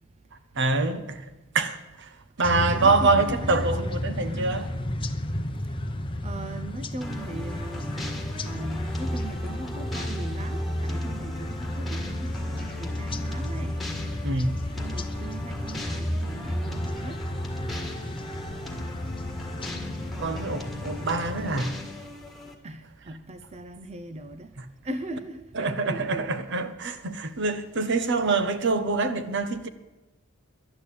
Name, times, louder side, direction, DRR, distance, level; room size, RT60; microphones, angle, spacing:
voice 1, 0.5-1.2 1.5-2.1 2.4-4.7 14.2-14.6 20.2-21.8 25.5-29.7, right 3 dB, 60° right, 1.0 m, -25 dB
sound 1, 2.4-21.6, left 1 dB, 25° left, 0.8 m, -32 dB
voice 2, 2.5-4.6 6.2-7.8 8.4-13.8 14.8-17.2 22.6-24.5 24.8-26.3 27.9-28.0, right 2 dB, 30° right, 0.6 m, -39 dB
sound 2, 7.0-22.5, left 1 dB, ahead, 1.8 m, -39 dB
11.0 x 10.5 x 8.5 m
head